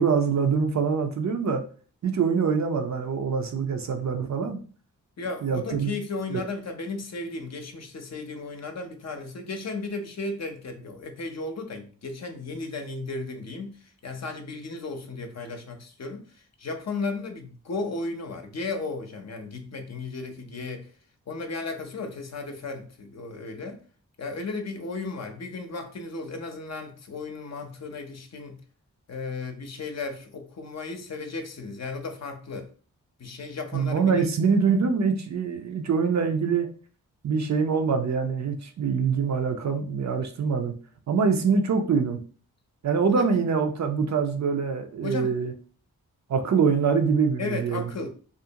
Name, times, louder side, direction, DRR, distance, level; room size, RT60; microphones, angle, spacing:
voice 1, 0.0-1.6 2.0-4.6 5.4-5.9 6.3-6.4 33.7-36.7 37.2-40.7 41.1-42.2 42.8-45.5 46.3-47.9, right 5 dB, 55° right, 0.5 m, -24 dB
voice 2, 5.2-20.9 21.3-23.8 24.2-28.6 29.1-32.7 33.2-34.5 43.2-43.3 45.0-45.4 47.4-48.1, left 3 dB, 50° left, 0.6 m, -35 dB
2.4 x 2.1 x 2.7 m
cardioid pair, 45°, 34 cm